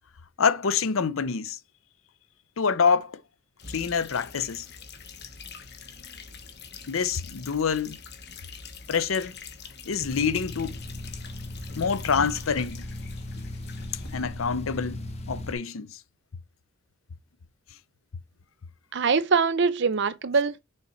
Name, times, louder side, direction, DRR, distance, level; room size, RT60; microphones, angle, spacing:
voice 1, 0.4-1.6 2.6-3.2 3.7-4.7 6.9-8.0 8.9-9.3 9.9-10.8 11.8-12.9 14.1-15.0 15.3-16.0, left 6 dB, 75° left, 0.6 m, -26 dB
sound 1, 3.6-14.2, left 4 dB, 55° left, 1.2 m, -44 dB
sound 2, 10.0-15.5, left 1 dB, 30° left, 1.0 m, -37 dB
voice 2, 18.9-20.6, right 5 dB, 60° right, 0.7 m, -23 dB
6.6 x 4.2 x 4.5 m
head